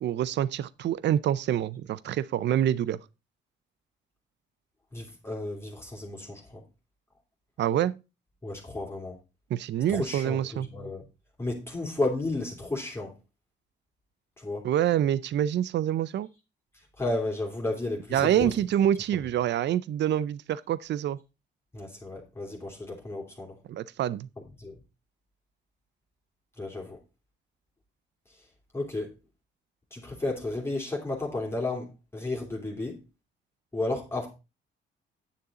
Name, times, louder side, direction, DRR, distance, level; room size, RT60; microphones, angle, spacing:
voice 1, 0.0-3.0 7.6-8.0 9.5-10.7 14.6-16.3 18.1-21.2 23.7-24.3, right 11 dB, 65° right, 0.5 m, -26 dB
voice 2, 4.9-6.6 8.4-9.2 9.9-11.0 11.4-13.1 14.4-14.6 17.0-18.5 21.7-23.5 24.6-24.7 26.6-27.0 28.7-29.1 29.9-33.0 33.7-34.3, left 2 dB, 10° left, 3.1 m, -33 dB
9.7 x 6.6 x 4.2 m
cardioid pair, 90°, 20 cm